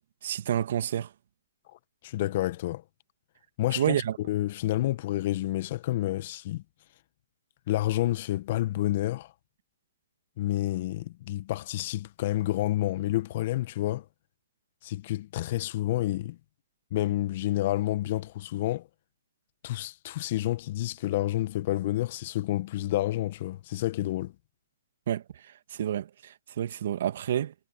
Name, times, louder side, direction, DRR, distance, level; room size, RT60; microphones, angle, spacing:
voice 1, 0.2-1.1 3.8-4.2 25.1-25.2 25.7-27.5, right 10 dB, 60° right, 1.9 m, -29 dB
voice 2, 2.0-2.8 3.6-6.6 7.7-9.3 10.4-14.0 14.8-16.4 16.9-18.9 19.6-24.3, left 15 dB, 45° left, 1.3 m, -29 dB
hypercardioid pair, 135°, 0 cm